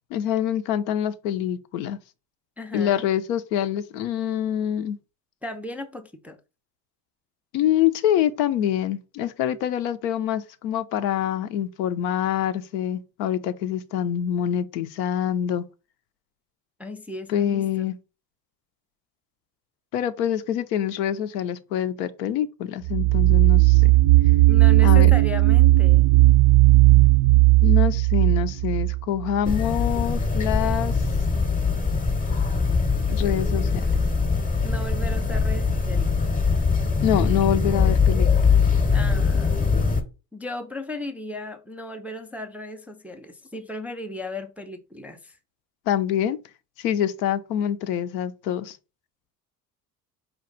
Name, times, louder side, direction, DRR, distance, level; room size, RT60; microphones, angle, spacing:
voice 1, 0.1-2.0 2.7-5.0 7.5-15.6 17.3-18.0 19.9-23.9 24.8-25.1 27.6-31.0 33.1-33.9 37.0-38.3 45.9-46.4 46.8-48.8, left 10 dB, 75° left, 0.6 m, -25 dB
voice 2, 2.6-3.1 5.4-6.4 16.8-17.9 24.5-26.1 29.5-29.6 34.6-36.1 38.9-39.5 40.3-45.4, left 1 dB, 5° right, 0.4 m, -35 dB
sound 1, 22.8-29.5, right 20 dB, 60° right, 0.5 m, -16 dB
sound 2, 29.4-40.0, left 4 dB, 15° left, 0.8 m, -22 dB
4.5 x 2.3 x 3.8 m
hypercardioid pair, 60°, 49 cm